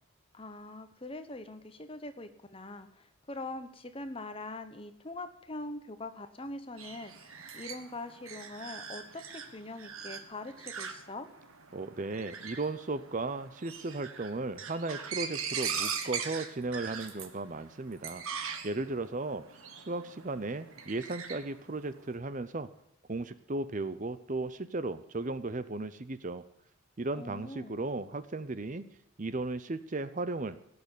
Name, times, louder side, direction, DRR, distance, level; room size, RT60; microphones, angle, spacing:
voice 1, 0.3-11.3 27.1-27.8, left 2 dB, 25° left, 9 dB, 1.0 m, -43 dB
sound 1, 6.8-21.9, right 7 dB, 75° right, 1.6 m, -41 dB
voice 2, 11.7-18.2 18.6-19.4 19.9-22.7 23.1-26.4 27.0-28.8 29.2-30.6, right 2 dB, 35° right, 13 dB, 0.6 m, -35 dB
17.0 x 6.9 x 10.0 m, 0.78 s
head